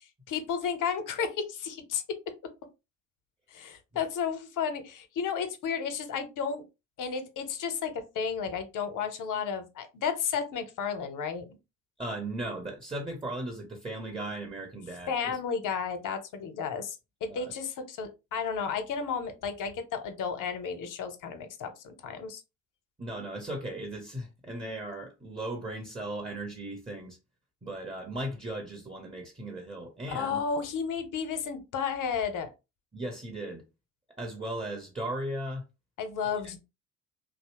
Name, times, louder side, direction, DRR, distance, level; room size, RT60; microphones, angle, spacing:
voice 1, 0.3-2.0 3.5-6.6 7.0-11.4 15.1-16.9 17.2-22.4 30.1-32.5 36.0-36.6, left 6 dB, 50° left, 0.7 m, -32 dB
voice 2, 12.0-15.4 17.3-17.5 23.0-27.2 27.6-30.4 32.9-33.6 34.2-35.6, right 1 dB, 15° right, 0.8 m, -37 dB
2.7 x 2.0 x 2.9 m
hypercardioid pair, 55°, 40 cm